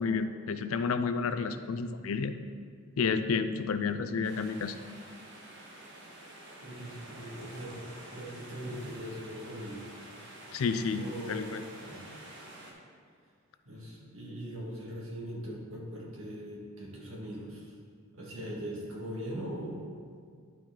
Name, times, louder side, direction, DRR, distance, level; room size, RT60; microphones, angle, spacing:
voice 1, 0.0-2.3 3.0-4.8 10.5-11.6, left 5 dB, 70° left, 10 dB, 0.4 m, -30 dB
sound 1, 4.2-12.7, right 1 dB, 55° right, 1.2 m, -49 dB
voice 2, 6.6-9.8 10.9-12.1 13.7-17.7 18.1-19.8, equal, 70° right, -4 dB, 1.8 m, -41 dB
10.5 x 4.5 x 3.8 m, 2.1 s
head